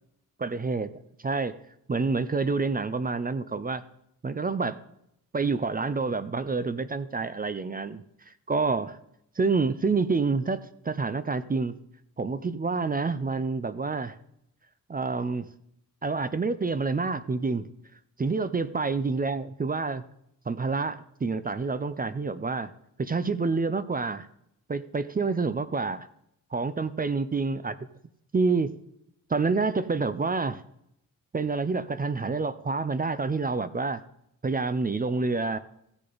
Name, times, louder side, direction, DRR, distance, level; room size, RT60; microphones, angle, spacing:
voice 1, 0.4-1.5 1.9-3.8 4.2-4.8 5.3-9.0 9.4-11.7 12.2-14.2 14.9-15.5 16.0-17.7 18.2-20.0 20.5-22.7 23.0-24.3 24.7-26.1 26.5-27.8 28.3-28.7 29.3-30.6 31.3-34.0 34.4-35.6, right 4 dB, 25° right, 13 dB, 0.5 m, -28 dB
15.5 x 6.6 x 4.0 m, 0.76 s
cardioid pair, 95°, 35 cm